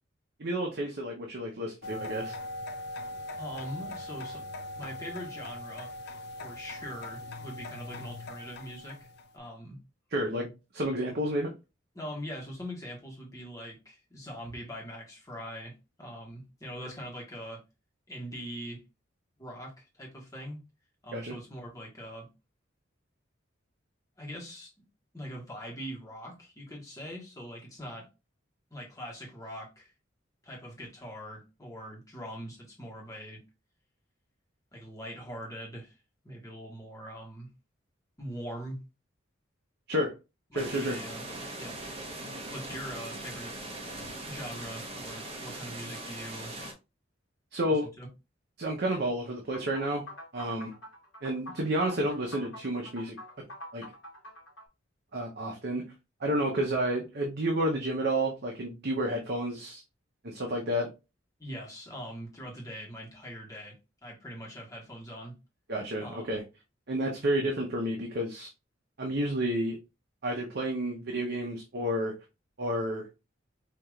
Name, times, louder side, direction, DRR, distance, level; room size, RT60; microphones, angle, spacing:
voice 1, 0.4-2.3 10.1-11.5 21.1-21.4 39.9-40.1 40.5-41.0 47.5-47.9 48.6-50.1 50.3-50.7 51.2-53.5 53.7-53.9 55.1-55.9 56.2-59.8 60.2-60.9 65.7-66.4 66.9-68.5 69.0-69.8 70.2-72.1 72.6-73.1, right 1 dB, 55° right, 0.8 m, -30 dB
sound 1, 1.8-9.3, left 1 dB, 60° left, 0.5 m, -41 dB
voice 2, 3.4-4.4 4.7-5.9 6.4-9.8 11.9-17.6 18.1-18.8 19.4-20.6 21.0-22.3 24.2-24.7 25.1-28.1 28.7-29.9 30.4-33.4 34.7-36.0 36.2-37.5 38.2-38.8 40.5-41.2 41.6-41.8 42.5-43.6 44.3-46.5 47.7-48.1 61.4-65.4 66.0-66.3, equal, 20° left, 1.4 m, -42 dB
sound 2, 40.6-46.7, right 2 dB, 30° right, 0.9 m, -40 dB
sound 3, 49.5-54.7, equal, 75° left, 1.2 m, -46 dB
4.7 x 2.8 x 2.4 m
head